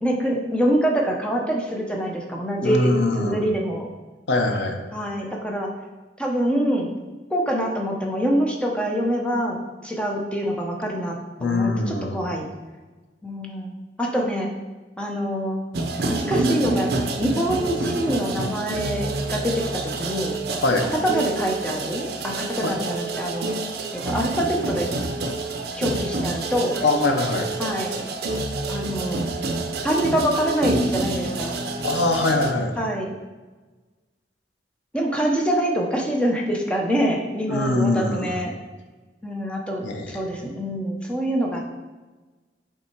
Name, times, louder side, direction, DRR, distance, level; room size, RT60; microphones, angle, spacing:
voice 1, 0.0-3.9 4.9-5.7 6.2-6.9 7.3-9.6 9.8-12.5 13.2-14.5 15.0-15.6 16.1-16.9 17.2-20.4 21.0-23.5 23.9-24.9 25.7-26.8 27.6-27.9 28.7-29.3 29.8-31.5 32.8-33.1 34.9-38.5 39.2-41.6, equal, 5° left, 0 dB, 0.7 m, -25 dB
voice 2, 2.6-3.4 4.3-4.8 11.4-12.2 20.6-20.9 22.6-22.7 26.8-27.5 31.8-32.7 37.5-38.4 39.8-40.2, left 2 dB, 90° left, 4 dB, 0.7 m, -22 dB
sound 1, 15.7-32.5, right 2 dB, 60° right, 0.6 m, -28 dB
6.0 x 3.6 x 4.5 m, 1.2 s
head